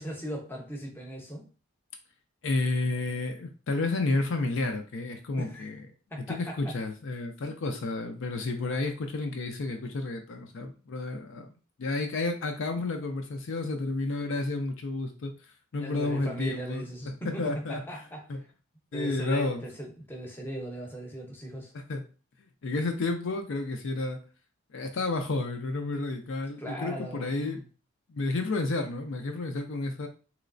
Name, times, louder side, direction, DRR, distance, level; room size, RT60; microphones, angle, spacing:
voice 1, 0.0-1.4 5.4-5.7 6.1-6.7 7.4-7.5 15.8-18.2 18.9-21.7 26.6-27.6, equal, 10° left, 0 dB, 0.7 m, -38 dB
voice 2, 2.4-5.8 6.3-11.5 11.8-17.8 18.3-18.4 18.9-19.6 21.7-22.0 22.4-24.2 24.7-27.6 28.1-30.1, left 2 dB, 60° left, 5 dB, 0.4 m, -31 dB
3.1 x 3.0 x 2.5 m, 0.36 s
head